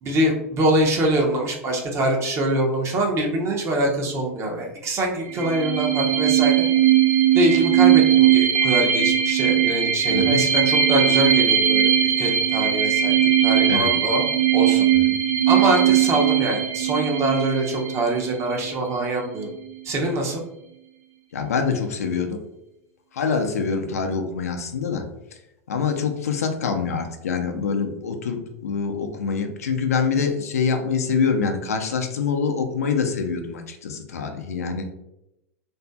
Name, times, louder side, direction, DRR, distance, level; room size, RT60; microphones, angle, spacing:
voice 1, 0.0-6.7 7.3-13.2 13.4-14.2 14.5-14.9 15.5-19.5 19.8-20.4, right 1 dB, 35° right, 1 dB, 0.7 m, -24 dB
sound 1, 5.3-18.7, right 10 dB, 70° right, 0.7 m, -19 dB
voice 2, 10.1-10.5 13.7-13.9 14.9-15.1 21.3-22.4 23.1-25.0 25.7-34.9, left 5 dB, 80° left, 5 dB, 0.4 m, -25 dB
2.6 x 2.5 x 2.2 m, 0.86 s
hypercardioid pair, 90°, 8 cm